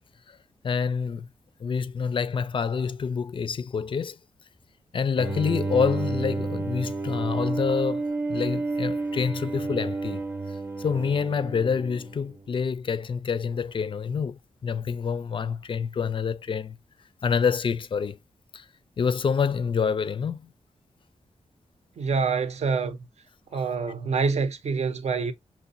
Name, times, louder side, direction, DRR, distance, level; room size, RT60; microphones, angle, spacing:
voice 1, 0.6-1.3 1.6-4.2 4.9-8.0 8.3-10.2 10.8-16.8 17.2-18.2 18.5-18.7 19.0-20.5 23.5-23.6, left 6 dB, 45° left, 0.4 m, -27 dB
Bowed string instrument, 5.2-12.4, right 3 dB, 20° right, 0.7 m, -30 dB
voice 2, 22.0-23.1 23.5-25.3, right 5 dB, 65° right, 0.7 m, -26 dB
5.9 x 2.1 x 2.5 m
wide cardioid pair, 105°, 12 cm